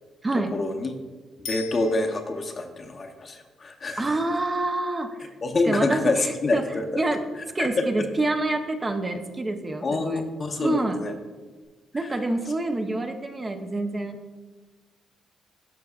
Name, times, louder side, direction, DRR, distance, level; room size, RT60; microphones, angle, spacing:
voice 1, 0.5-0.9 1.4-4.1 5.4-7.0 7.6-7.7 8.0-8.1 9.8-11.1 12.0-12.1, left 2 dB, 40° left, 4 dB, 0.7 m, -27 dB
Bicycle bell, 1.5-2.6 11.6-11.7, left 4 dB, 75° left, 0.8 m, -39 dB
voice 2, 4.0-5.3 5.7-6.6 7.0-7.2 7.5-10.2 10.6-11.0 11.9-14.4, right 2 dB, 25° right, 6 dB, 0.6 m, -27 dB
12.0 x 4.7 x 2.4 m, 1.3 s
cardioid pair, 90°, 0 cm